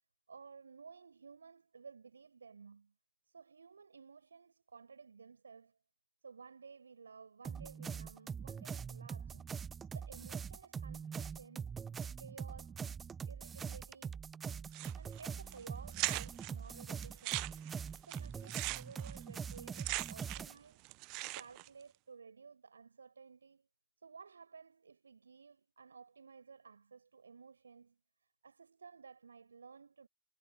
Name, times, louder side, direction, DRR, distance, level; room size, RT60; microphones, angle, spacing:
voice 1, 0.3-2.9 3.3-5.8 6.2-9.5 9.9-11.7 12.0-12.9 13.3-14.2 15.0-17.6 18.0-20.9 21.2-23.7 24.0-28.0 28.4-30.1, right 5 dB, 75° right, 7.1 m, -55 dB
sound 1, 7.4-20.5, right 6 dB, 20° right, 0.3 m, -43 dB
sound 2, 14.7-15.2 15.5-15.6 15.9-16.5 17.0-20.6 20.8-21.7, right 28 dB, 45° right, 1.2 m, -39 dB
figure-of-eight pair, 90°, 0 cm